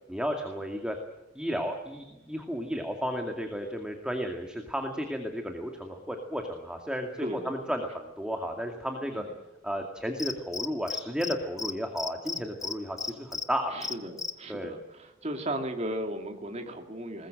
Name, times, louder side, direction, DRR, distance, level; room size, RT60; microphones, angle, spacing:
voice 1, 0.1-1.0 1.4-9.2 9.6-13.8 14.5-14.7, equal, 5° right, 3 dB, 2.2 m, -33 dB
voice 2, 7.2-7.6 9.1-9.3 13.7-17.3, right 1 dB, 35° right, 4 dB, 2.6 m, -36 dB
Cricket, 10.2-11.3 11.6-11.7 12.0-13.4 13.8-14.3, left 4 dB, 20° left, 1.1 m, -33 dB
21.5 x 20.5 x 7.8 m, 1.0 s
head